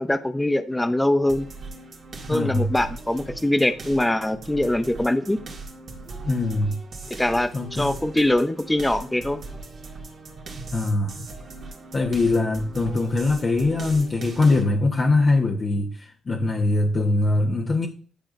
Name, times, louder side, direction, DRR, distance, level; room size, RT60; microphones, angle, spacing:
voice 1, 0.0-1.5 2.3-5.4 7.2-9.4, left 1 dB, 10° left, 0.5 m, -23 dB
sound 1, 1.3-14.6, right 3 dB, 55° right, 1.8 m, -39 dB
voice 2, 2.3-2.7 6.2-6.8 7.5-7.9 10.7-11.2 11.9-17.9, left 2 dB, 35° left, 1.1 m, -22 dB
10.0 x 4.9 x 2.5 m
cardioid pair, 90°, 0 cm